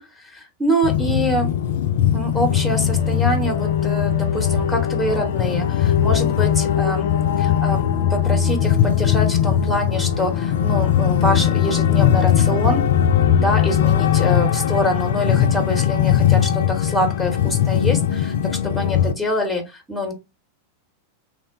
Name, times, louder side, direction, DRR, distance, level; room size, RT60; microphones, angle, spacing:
voice 1, 0.0-1.5 2.1-7.0 7.4-7.8 8.1-12.9 13.3-20.1, equal, ahead, 4 dB, 0.8 m, -25 dB
sound 1, 0.8-19.1, left 9 dB, 60° left, 0.3 m, -19 dB
3.0 x 2.1 x 3.6 m, 0.24 s
figure-of-eight pair, 90°, 0 cm